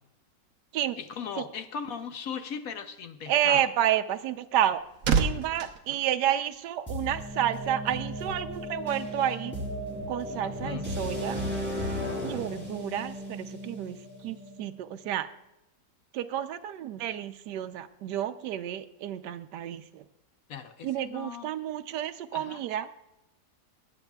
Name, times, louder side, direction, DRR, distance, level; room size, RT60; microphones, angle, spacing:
voice 1, 1.0-3.7 10.4-10.9 20.5-21.5 22.3-22.6, left 7 dB, 60° left, 8 dB, 1.1 m, -38 dB
voice 2, 3.3-4.8 5.1-9.6 10.1-11.4 12.2-14.0 14.2-15.3 16.1-20.0 20.8-22.9, right 11 dB, 80° right, 8 dB, 1.2 m, -30 dB
sound 1, 4.4-7.0 7.3-7.5, right 6 dB, 60° right, 1.2 m, -30 dB
sound 2, 6.9-14.7, equal, 5° right, 3.9 m, -35 dB
20.5 x 8.1 x 2.3 m, 0.90 s
omnidirectional pair, 1.9 m